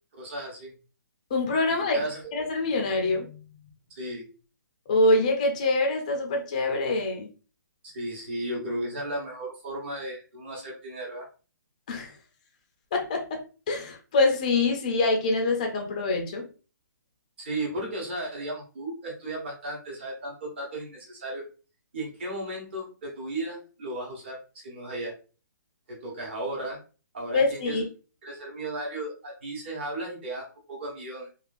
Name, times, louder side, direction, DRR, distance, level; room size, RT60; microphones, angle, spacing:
voice 1, 0.1-0.7 1.8-2.2 4.0-4.3 7.8-11.3 17.4-21.4 21.9-25.1 25.9-26.8 27.1-27.8 28.2-31.3, right 1 dB, 35° right, -2 dB, 1.0 m, -35 dB
voice 2, 1.3-2.0 2.3-3.4 4.9-7.3 11.9-12.1 12.9-16.5 27.3-27.8, left 2 dB, 20° left, 2 dB, 0.4 m, -25 dB
3.1 x 2.3 x 2.4 m, 0.35 s
hypercardioid pair, 175°, 10 cm